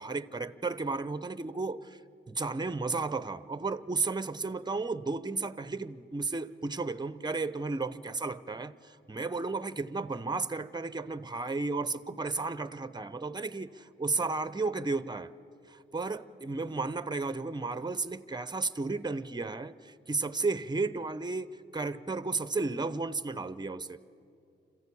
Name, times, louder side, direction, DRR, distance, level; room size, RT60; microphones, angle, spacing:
voice 1, 0.0-2.0 2.3-15.3 15.7-24.0, right 3 dB, 20° right, 0.8 m, -33 dB
26.5 x 15.0 x 8.6 m
cardioid pair, 65°, 21 cm